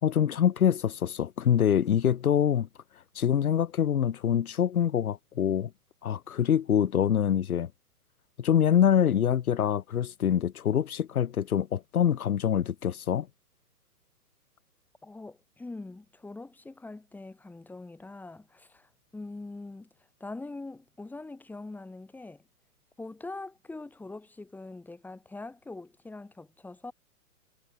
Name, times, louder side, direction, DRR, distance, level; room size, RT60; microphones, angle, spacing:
voice 1, 0.0-2.7 3.1-5.7 6.0-7.7 8.4-13.3, left 9 dB, 65° left, 3.1 m, -25 dB
voice 2, 15.0-19.9 20.2-22.4 23.0-26.9, left 2 dB, 5° left, 5.0 m, -43 dB
hypercardioid pair, 150°, 47 cm